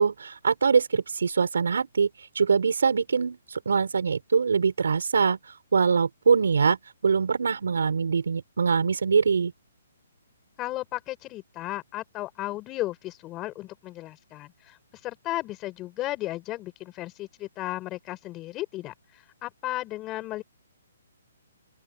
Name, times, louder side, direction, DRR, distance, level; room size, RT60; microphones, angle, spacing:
voice 1, 0.0-9.5, right 5 dB, 80° right, 5.7 m, -23 dB
voice 2, 10.6-14.8 15.0-20.4, left 17 dB, 20° left, 4.8 m, -34 dB
open air
hypercardioid pair, 150°, 0 cm